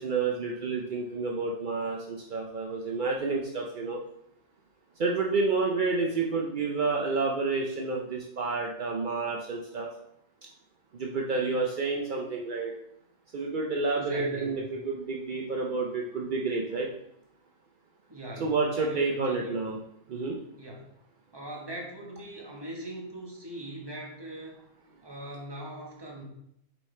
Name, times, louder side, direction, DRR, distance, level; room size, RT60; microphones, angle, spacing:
voice 1, 0.0-4.0 5.0-9.9 10.9-12.7 13.3-16.9 18.4-19.8 20.1-20.4, right 4 dB, 60° right, 0 dB, 0.5 m, -29 dB
voice 2, 13.9-14.7 18.1-19.6 20.6-20.8 21.3-24.6 25.0-26.2, right 1 dB, 20° right, -1 dB, 1.1 m, -40 dB
7.3 x 4.7 x 3.3 m, 0.76 s
omnidirectional pair, 1.6 m